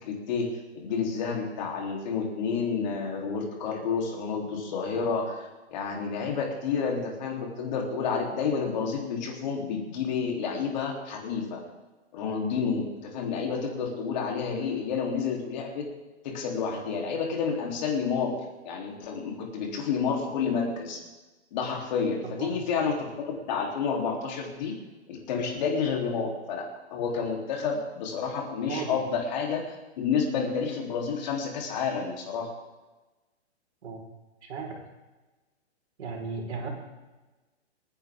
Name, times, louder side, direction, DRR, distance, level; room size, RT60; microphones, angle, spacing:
voice 1, 0.0-11.6 12.1-15.9 16.2-18.4 18.6-21.0 21.5-24.7 25.1-26.6 26.9-29.6 30.0-32.5, left 5 dB, 40° left, 0 dB, 3.2 m, -30 dB
voice 2, 28.7-29.0 33.8-34.0 34.4-34.8 36.0-36.7, right 5 dB, 70° right, 1 dB, 4.5 m, -35 dB
27.0 x 10.0 x 3.6 m, 1.2 s
hypercardioid pair, 160°, 35 cm